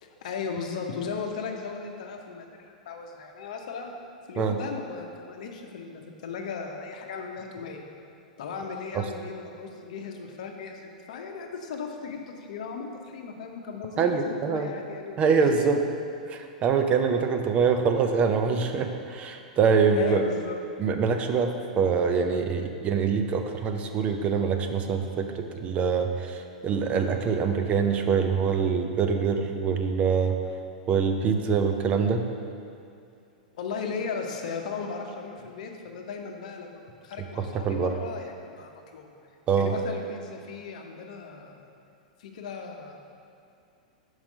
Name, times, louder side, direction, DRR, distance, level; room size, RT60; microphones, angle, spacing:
voice 1, 0.0-3.9 4.3-7.8 8.4-15.5 19.9-20.6 33.6-39.1 39.6-41.7 42.2-43.0, left 5 dB, 60° left, 3 dB, 0.8 m, -37 dB
voice 2, 14.0-14.7 15.2-15.8 16.3-20.2 20.8-25.3 25.6-30.4 30.9-32.2 37.7-37.9 39.5-39.7, right 5 dB, 30° right, 5 dB, 0.5 m, -24 dB
5.8 x 4.8 x 5.3 m, 2.5 s
figure-of-eight pair, 100°, 4 cm